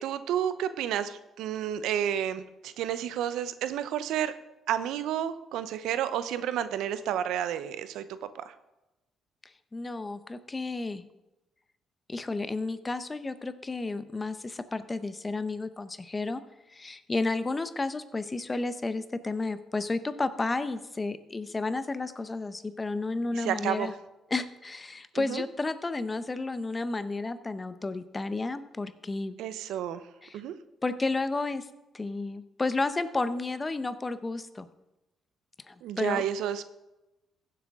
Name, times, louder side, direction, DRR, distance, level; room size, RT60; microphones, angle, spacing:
voice 1, 0.0-4.3 4.7-8.0 23.3-23.9 25.2-25.4 29.4-30.0 30.3-30.5 35.8-36.6, right 10 dB, 85° right, 13 dB, 0.6 m, -31 dB
voice 2, 9.7-11.1 12.1-16.4 16.7-23.9 24.3-29.4 30.2-30.4 30.8-31.6 31.9-34.7 35.7-36.3, left 3 dB, 25° left, 12 dB, 0.7 m, -32 dB
15.5 x 7.6 x 3.6 m, 0.97 s
cardioid pair, 90°, 0 cm